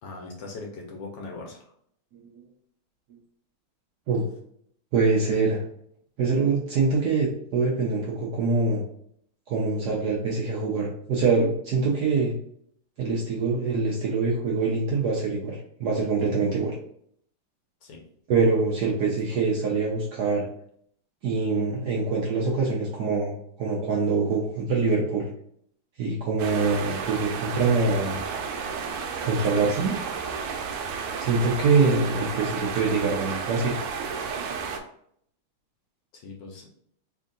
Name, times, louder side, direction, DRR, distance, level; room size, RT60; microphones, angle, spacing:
voice 1, 0.0-1.7 17.8-18.0 19.3-19.4 36.1-36.7, left 3 dB, 70° left, 0 dB, 1.2 m, -40 dB
voice 2, 4.9-5.6 6.2-8.8 9.5-12.3 13.0-16.7 18.3-20.5 21.2-25.3 26.0-28.2 29.2-30.0 31.2-33.8, right 4 dB, 70° right, -2 dB, 1.0 m, -24 dB
sound 1, 26.4-34.8, right 6 dB, 85° right, 1.5 m, -32 dB
3.5 x 2.8 x 3.7 m, 0.67 s
omnidirectional pair, 2.4 m